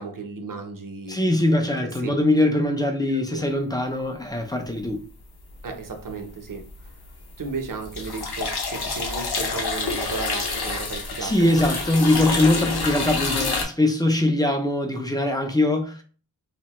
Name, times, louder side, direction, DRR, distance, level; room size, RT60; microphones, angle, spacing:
voice 1, 0.0-1.1 1.8-2.1 2.7-2.8 3.1-3.4 5.6-6.6 7.4-11.5, right 4 dB, 55° right, 0.7 m, -34 dB
voice 2, 1.1-5.0 11.2-16.0, left 1 dB, 10° left, 0.4 m, -22 dB
sound 1, 5.5-6.1 6.4-13.6, left 4 dB, 70° left, 0.7 m, -28 dB
3.1 x 2.1 x 2.9 m
wide cardioid pair, 65°, 40 cm